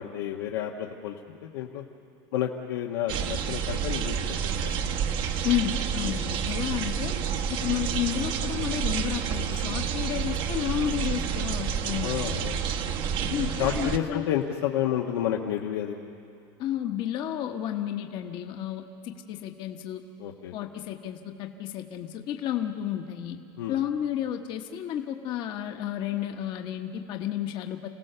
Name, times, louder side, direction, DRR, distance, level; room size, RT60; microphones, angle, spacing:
voice 1, 0.0-1.8 2.3-4.4 4.6-5.2 6.0-6.1 12.0-12.6 13.6-16.0 20.2-20.6 23.6-23.8, left 10 dB, 80° left, 0 dB, 1.3 m, -30 dB
sound 1, 3.1-14.0, right 7 dB, 40° right, 1.0 m, -29 dB
voice 2, 5.4-7.1 7.5-12.4 13.3-14.3 16.6-20.0 20.5-23.4 23.7-27.9, left 11 dB, 40° left, 5 dB, 1.2 m, -31 dB
28.5 x 16.5 x 6.8 m, 2.5 s
supercardioid pair, 150°, 12 cm